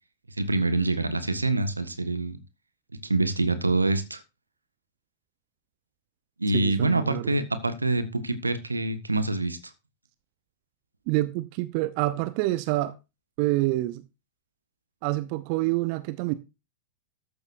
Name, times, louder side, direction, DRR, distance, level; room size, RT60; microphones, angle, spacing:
voice 1, 0.4-2.4 3.0-4.2 6.4-9.7, right 2 dB, 80° right, 1.5 m, -26 dB
voice 2, 6.5-7.3 11.1-12.9 13.4-14.0 15.0-16.3, right 18 dB, 45° right, 0.8 m, -27 dB
13.5 x 12.0 x 2.6 m
figure-of-eight pair, 90°, 0 cm